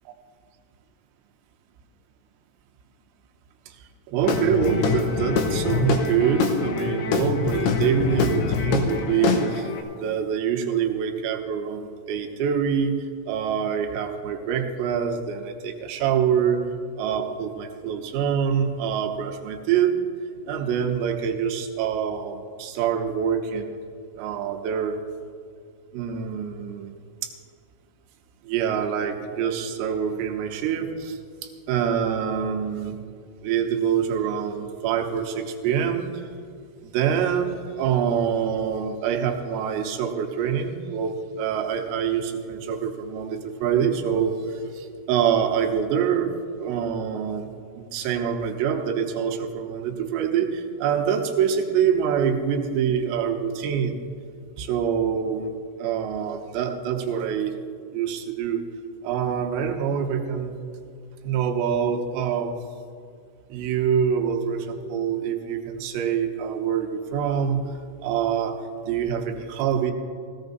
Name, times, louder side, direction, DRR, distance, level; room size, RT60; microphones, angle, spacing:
voice 1, 4.1-9.7 10.0-13.0 13.3-16.6 17.0-19.9 20.5-23.8 24.2-25.0 25.9-26.9 27.2-27.3 28.4-33.0 33.4-36.3 36.9-46.3 46.6-47.5 47.8-54.1 54.6-55.5 55.8-57.6 57.9-58.6 59.0-60.6 61.2-62.6 63.5-67.6 68.0-69.9, right 8 dB, 90° right, 3 dB, 3.6 m, -25 dB
Guitar / Drum, 4.2-9.8, left 6 dB, 85° left, 2.3 m, -25 dB
17.5 x 15.5 x 2.6 m, 2.2 s
omnidirectional pair, 5.8 m